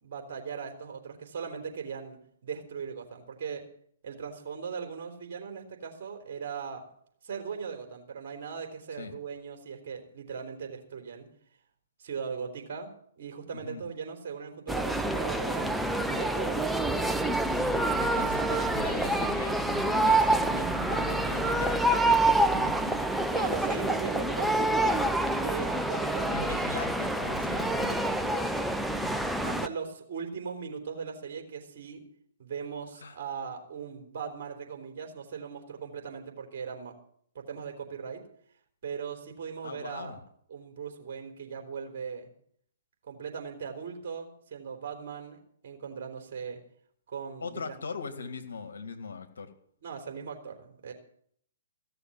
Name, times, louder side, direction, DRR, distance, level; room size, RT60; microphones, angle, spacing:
voice 1, 0.0-3.7 4.0-6.9 7.2-11.3 12.0-12.9 13.2-15.7 16.0-18.1 23.3-26.6 27.7-28.8 29.4-32.0 32.4-37.0 37.3-38.2 38.8-40.2 40.5-42.3 43.1-46.6 47.1-47.8 49.8-50.9, right 6 dB, 50° right, 3 dB, 3.8 m, -39 dB
voice 2, 13.5-13.8 18.0-23.0 23.6-23.9 26.2-28.0 29.0-29.3 33.0-33.2 39.6-40.2 47.4-49.5, left 4 dB, 70° left, 7 dB, 2.1 m, -40 dB
sound 1, 14.7-29.7, right 2 dB, ahead, 0.7 m, -27 dB
16.5 x 6.9 x 9.3 m, 0.65 s
figure-of-eight pair, 125°, 0 cm